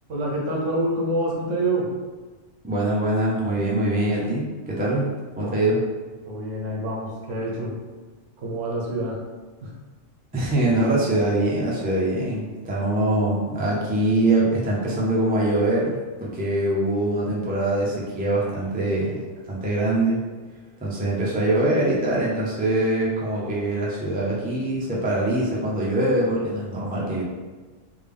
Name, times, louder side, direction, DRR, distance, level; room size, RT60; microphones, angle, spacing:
voice 1, 0.1-1.9 5.4-5.7 6.2-7.8 8.4-9.2 9.6-9.7, right 1 dB, 70° right, -3 dB, 1.2 m, -27 dB
voice 2, 2.6-5.8 10.3-19.2 19.4-20.2 20.8-27.2, right 1 dB, 15° right, -5 dB, 0.3 m, -23 dB
3.6 x 2.3 x 3.4 m, 1.3 s
omnidirectional pair, 1.3 m